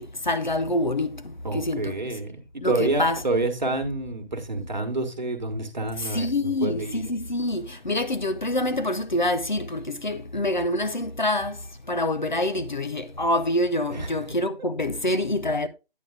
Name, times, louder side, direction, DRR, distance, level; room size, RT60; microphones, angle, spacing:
voice 1, 0.0-2.2 2.6-3.2 6.0-11.6 11.9-15.7, left 1 dB, 50° left, 0.6 m, -26 dB
voice 2, 1.4-7.0 13.9-14.1, right 2 dB, 50° right, 1.4 m, -28 dB
9.2 x 8.9 x 2.4 m
figure-of-eight pair, 165°, 30 cm